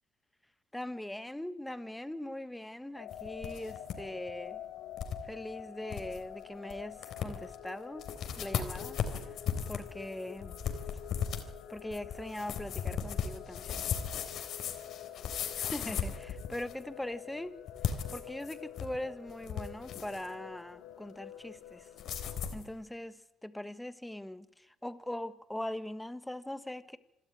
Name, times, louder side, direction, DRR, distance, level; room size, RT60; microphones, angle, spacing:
voice 1, 0.7-4.6 5.2-8.0 8.4-9.0 9.7-10.6 11.7-13.8 15.5-17.6 18.1-21.9 22.5-27.0, left 1 dB, 5° left, 1.5 m, -41 dB
sound 1, 2.9-22.5, left 11 dB, 80° left, 2.6 m, -48 dB
sound 2, 3.1-4.0 4.3-4.4 5.0-5.2 5.6-5.7 5.9-6.2 6.7-6.8 7.0-7.5 8.0-16.8 17.7-19.0 19.3-20.3 22.0-22.6, left 8 dB, 65° left, 3.6 m, -36 dB
26.5 x 12.5 x 9.4 m
supercardioid pair, 80°, 0 cm